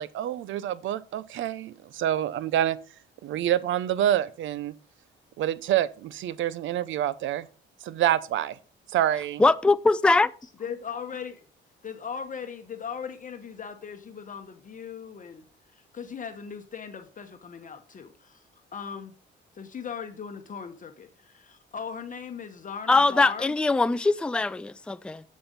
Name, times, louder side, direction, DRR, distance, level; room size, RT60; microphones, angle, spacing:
voice 1, 0.0-2.8 3.2-4.7 5.4-7.5 7.8-8.6 8.9-9.4, right 11 dB, 75° right, 0.6 m, -27 dB
voice 2, 9.4-10.3 22.9-25.2, left 3 dB, 5° left, 0.4 m, -22 dB
voice 3, 10.4-11.5 11.8-19.1 19.5-23.6, left 6 dB, 40° left, 1.1 m, -39 dB
7.6 x 7.0 x 5.2 m
cardioid pair, 90°, 20 cm